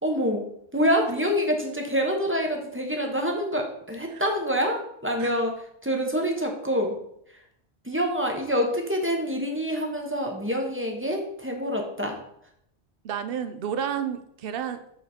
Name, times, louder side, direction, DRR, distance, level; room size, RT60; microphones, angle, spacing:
voice 1, 0.0-5.5 5.8-7.0 7.8-12.2, equal, 10° right, 1 dB, 0.9 m, -26 dB
voice 2, 13.0-14.8, right 8 dB, 60° right, 10 dB, 0.8 m, -31 dB
7.2 x 4.0 x 4.3 m, 0.74 s
omnidirectional pair, 1.2 m